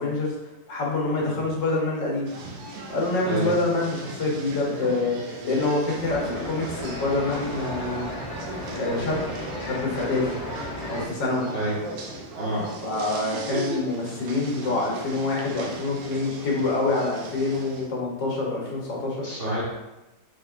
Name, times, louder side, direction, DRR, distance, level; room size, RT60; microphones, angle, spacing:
voice 1, 0.0-2.3 2.9-8.1 8.7-9.2 9.6-10.3 10.9-11.5 12.8-19.3, left 2 dB, 75° left, -3 dB, 1.6 m, -26 dB
sound 1, 2.3-17.9, right 2 dB, 80° right, 1.4 m, -38 dB
sound 2, 6.0-11.1, left 1 dB, 35° left, 1.6 m, -34 dB
voice 2, 12.4-12.7 19.2-19.6, right 1 dB, 45° right, -8 dB, 0.8 m, -28 dB
4.4 x 3.9 x 2.4 m, 0.99 s
omnidirectional pair, 2.0 m